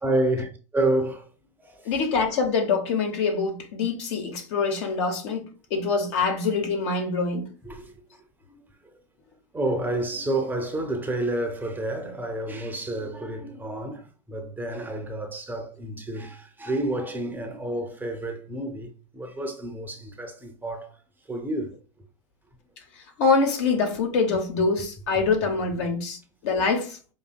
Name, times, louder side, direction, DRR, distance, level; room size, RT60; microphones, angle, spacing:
voice 1, 0.0-1.2 1.9-2.0 7.6-7.8 9.5-14.0 14.3-18.9 19.1-20.9 21.3-21.7 25.3-25.4, right 1 dB, 10° right, 0.6 m, -29 dB
voice 2, 1.8-5.4 5.7-7.4 23.2-26.2 26.4-27.0, left 4 dB, 60° left, 1.0 m, -24 dB
5.1 x 2.6 x 2.3 m
hypercardioid pair, 95°, 17 cm